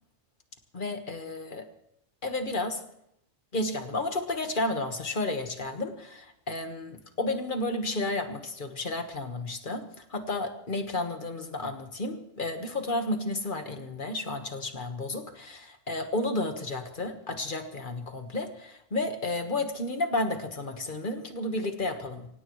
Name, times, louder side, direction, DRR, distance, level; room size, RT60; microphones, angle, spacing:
voice 1, 0.7-1.7 2.2-2.8 3.5-22.3, left 2 dB, 40° left, 6 dB, 1.6 m, -32 dB
24.5 x 17.5 x 3.2 m, 0.78 s
omnidirectional pair, 1.3 m